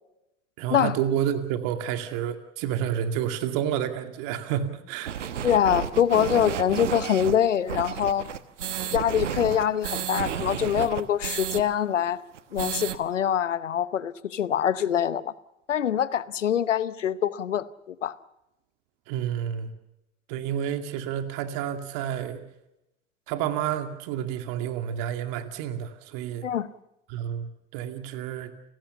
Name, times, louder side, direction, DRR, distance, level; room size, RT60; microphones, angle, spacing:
voice 1, 0.6-5.1 19.1-19.7 20.3-22.4 23.3-26.4 27.1-28.5, right 9 dB, 65° right, 8 dB, 2.4 m, -30 dB
sound 1, 5.0-11.6 11.9-12.0 12.3-13.0, right 9 dB, 85° right, 1.2 m, -32 dB
voice 2, 5.4-8.3 8.8-12.2 12.5-15.3 15.7-18.1 26.4-26.7, left 9 dB, 85° left, 17 dB, 0.9 m, -24 dB
30.0 x 16.5 x 7.0 m, 0.89 s
hypercardioid pair, 65°, 36 cm